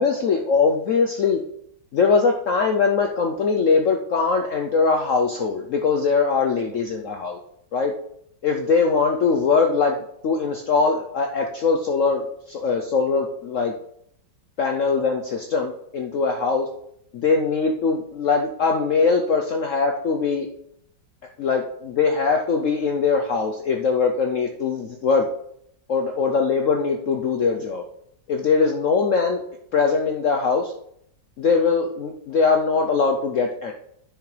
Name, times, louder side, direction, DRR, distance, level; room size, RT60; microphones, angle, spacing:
voice 1, 0.0-1.4 1.9-7.4 7.7-7.9 8.4-10.0 10.2-13.7 14.6-16.7 17.1-20.5 21.4-25.3 25.9-27.8 28.3-29.4 29.7-30.7 31.4-33.7, left 5 dB, 65° left, 3 dB, 0.8 m, -21 dB
9.5 x 6.8 x 3.2 m, 0.71 s
omnidirectional pair, 2.0 m